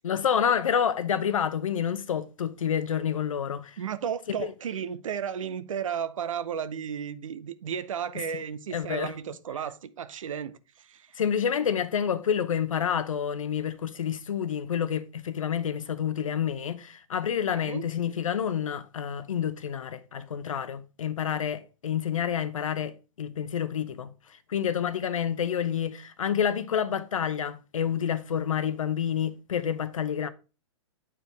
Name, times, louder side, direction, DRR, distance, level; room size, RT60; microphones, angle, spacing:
voice 1, 0.0-3.8 4.4-4.5 8.1-8.2 8.7-9.1 11.2-24.1 24.5-30.3, left 8 dB, 80° left, 0.7 m, -28 dB
voice 2, 3.8-10.6 10.9-11.1 17.6-17.9, right 8 dB, 80° right, 0.6 m, -33 dB
8.6 x 4.6 x 3.3 m
hypercardioid pair, 120°, 17 cm